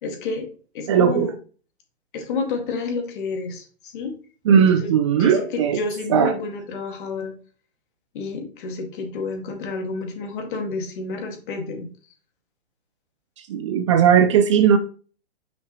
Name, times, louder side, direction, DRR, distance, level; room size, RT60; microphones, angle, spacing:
voice 1, 0.0-0.5 0.7-1.3 2.1-4.1 4.5-4.9 5.2-7.3 8.1-11.9, left 3 dB, 50° left, 3 dB, 2.1 m, -30 dB
voice 2, 0.9-1.3 4.5-5.8 6.1-6.3 13.4-14.8, right 8 dB, 30° right, 9 dB, 0.4 m, -17 dB
5.8 x 5.7 x 3.1 m, 0.41 s
figure-of-eight pair, 120°, 33 cm